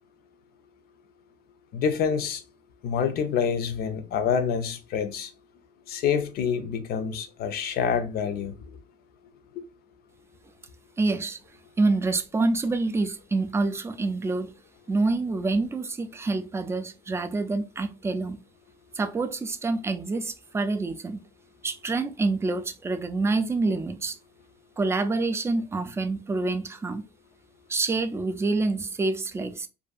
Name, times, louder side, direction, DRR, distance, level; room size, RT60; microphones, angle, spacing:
voice 1, 1.7-2.4 2.8-5.3 5.9-8.7, left 7 dB, 65° left, 0.5 m, -27 dB
voice 2, 11.0-11.4 11.8-14.5 14.9-18.4 18.9-21.2 21.6-24.2 24.8-27.1 27.7-29.7, right 3 dB, 15° right, 0.3 m, -27 dB
2.6 x 2.5 x 2.3 m
cardioid pair, 110°, 17 cm